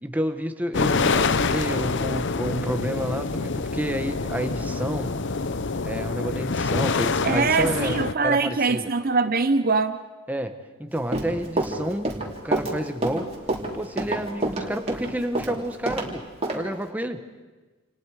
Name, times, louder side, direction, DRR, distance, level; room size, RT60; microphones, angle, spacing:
voice 1, 0.0-5.2 5.8-8.9 10.3-10.5 10.8-12.1 12.4-13.2 13.7-16.2 16.5-17.2, right 1 dB, 10° right, 7 dB, 1.2 m, -30 dB
sound 1, 0.7-8.1, left 4 dB, 55° left, 0.7 m, -26 dB
voice 2, 7.2-10.0, right 4 dB, 45° right, 10 dB, 0.7 m, -22 dB
Run, 10.9-16.1 16.4-16.6, right 2 dB, 30° right, 3.2 m, -27 dB
28.5 x 28.5 x 4.9 m, 1.3 s
head